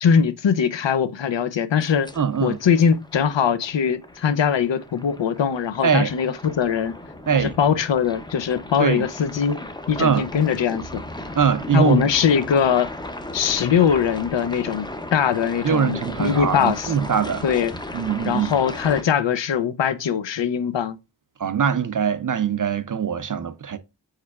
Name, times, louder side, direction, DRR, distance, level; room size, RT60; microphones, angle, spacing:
voice 1, 0.0-2.1 2.4-7.0 7.3-9.6 9.9-11.0 11.7-12.9 13.3-16.9 17.4-17.7 18.2-21.0, left 7 dB, 75° left, 0.5 m, -21 dB
sound 1, 1.7-19.0, left 1 dB, 10° left, 0.5 m, -36 dB
voice 2, 2.2-2.6 5.8-6.1 7.3-7.5 8.8-9.0 10.0-10.3 11.4-12.1 15.6-17.4 17.9-18.5 21.4-23.8, right 7 dB, 45° right, 0.5 m, -22 dB
4.8 x 4.4 x 2.3 m
wide cardioid pair, 60°, 44 cm